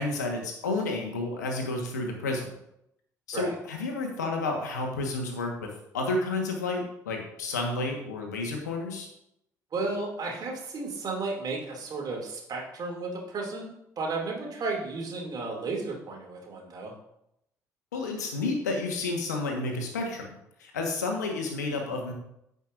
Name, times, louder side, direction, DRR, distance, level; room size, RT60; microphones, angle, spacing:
voice 1, 0.0-2.5 3.3-9.1 17.9-22.1, left 3 dB, 80° left, 2 dB, 1.4 m, -31 dB
voice 2, 9.7-16.9, right 3 dB, 45° right, 0 dB, 2.6 m, -33 dB
15.0 x 5.4 x 2.6 m, 0.81 s
figure-of-eight pair, 50°, 9 cm